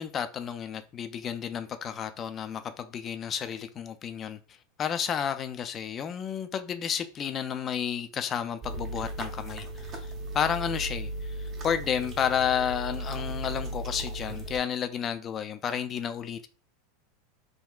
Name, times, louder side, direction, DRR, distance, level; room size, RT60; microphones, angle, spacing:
voice 1, 0.0-4.4 4.8-16.5, left 8 dB, 35° left, 0.3 m, -31 dB
sound 1, 8.6-14.6, right 1 dB, 40° right, 0.7 m, -36 dB
3.6 x 2.2 x 2.3 m
hypercardioid pair, 90°, 0 cm